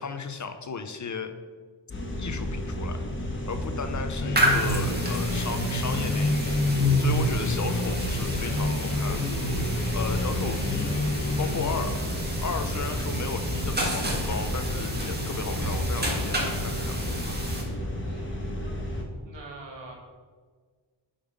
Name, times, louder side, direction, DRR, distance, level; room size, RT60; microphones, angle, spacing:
voice 1, 0.0-1.3 2.2-3.0 3.5-9.3 9.7-12.1 12.4-17.1, left 5 dB, 40° left, 9 dB, 0.5 m, -35 dB
sound 1, 1.9-19.0, left 1 dB, 25° left, 1.2 m, -33 dB
sound 2, 4.2-12.0, left 1 dB, 80° left, 1.1 m, -28 dB
sound 3, 4.3-17.6, equal, 20° right, 1.6 m, -31 dB
voice 2, 18.0-18.5 18.9-19.9, right 3 dB, 70° right, 0 dB, 1.8 m, -45 dB
6.9 x 5.4 x 5.1 m, 1.5 s
wide cardioid pair, 155°, 45 cm